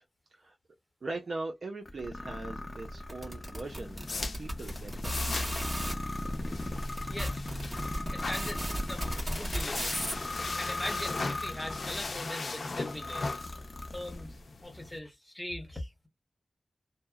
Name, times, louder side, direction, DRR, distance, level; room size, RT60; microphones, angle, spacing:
voice 1, 1.0-5.6, right 2 dB, 75° right, 0.5 m, -41 dB
sound 1, 1.9-12.2 12.7-14.4, left 1 dB, 35° left, 0.6 m, -39 dB
sound 2, 3.1-5.9 6.6-6.7 7.0-10.5, equal, 30° right, 1.4 m, -34 dB
sound 3, 3.6-15.0, left 3 dB, 75° left, 0.5 m, -39 dB
voice 2, 7.1-7.6 7.9-10.0 10.6-13.3 13.9-16.1, left 1 dB, 10° left, 1.0 m, -41 dB
2.7 x 2.0 x 2.3 m
wide cardioid pair, 65°, 0 cm